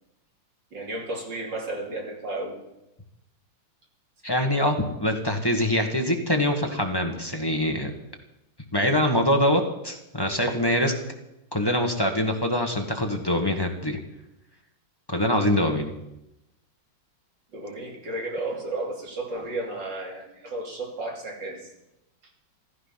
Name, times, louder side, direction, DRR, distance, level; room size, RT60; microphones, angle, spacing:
voice 1, 0.7-2.6 17.5-21.6, right 2 dB, 60° right, 0 dB, 3.6 m, -33 dB
voice 2, 4.2-7.9 8.7-10.9 11.5-14.0 15.1-15.9, left 1 dB, 15° left, 3 dB, 1.4 m, -24 dB
15.0 x 14.0 x 5.8 m, 0.89 s
omnidirectional pair, 2.2 m